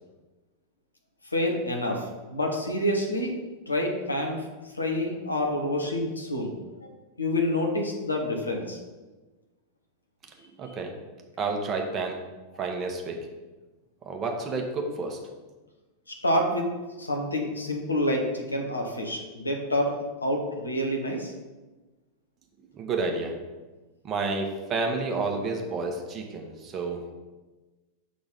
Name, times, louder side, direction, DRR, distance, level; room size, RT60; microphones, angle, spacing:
voice 1, 1.3-3.3 3.7-4.4 4.7-6.5 6.8-6.9 7.2-8.8 16.1-16.7 17.0-21.3, left 1 dB, 80° left, 2 dB, 1.1 m, -28 dB
voice 2, 10.4-10.9 11.4-12.2 12.6-13.2 14.0-15.2 22.7-23.4 24.0-27.1, right 3 dB, 25° right, 2 dB, 1.1 m, -30 dB
6.3 x 3.8 x 5.7 m, 1.2 s
figure-of-eight pair, 90°, 0 cm